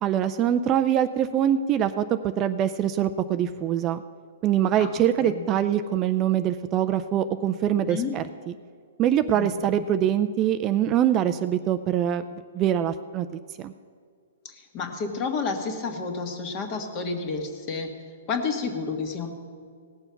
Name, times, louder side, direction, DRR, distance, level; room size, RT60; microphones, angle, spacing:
voice 1, 0.0-4.0 4.4-8.5 9.0-13.7, right 10 dB, 25° right, 10 dB, 0.4 m, -24 dB
voice 2, 7.7-8.1 9.3-9.9 14.4-17.9 18.3-19.3, left 4 dB, 30° left, 5 dB, 1.6 m, -30 dB
18.0 x 6.9 x 5.8 m, 2.2 s
hypercardioid pair, 150°, 0 cm